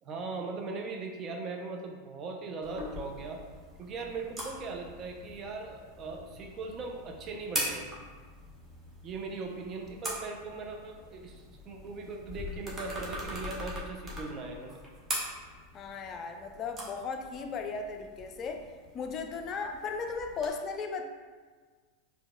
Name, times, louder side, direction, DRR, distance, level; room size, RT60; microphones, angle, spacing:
voice 1, 0.0-3.4 3.8-7.9 9.0-14.8, right 3 dB, 35° right, 2 dB, 0.5 m, -39 dB
sound 1, 2.6-20.5, equal, 20° right, 1.0 m, -42 dB
voice 2, 15.7-18.7 18.9-21.1, left 4 dB, 35° left, 5 dB, 0.4 m, -36 dB
4.6 x 2.8 x 2.2 m, 1.5 s
hypercardioid pair, 90°, 0 cm